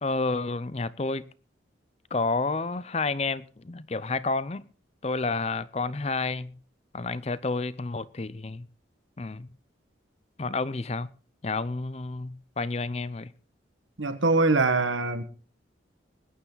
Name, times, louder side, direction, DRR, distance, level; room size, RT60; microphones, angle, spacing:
voice 1, 0.0-1.2 2.1-4.7 5.0-6.6 6.9-8.7 9.2-9.5 10.4-11.1 11.4-13.3, left 3 dB, 35° left, 0.5 m, -30 dB
voice 2, 14.0-15.2, right 3 dB, 85° right, 1.6 m, -23 dB
20.5 x 9.5 x 4.0 m
head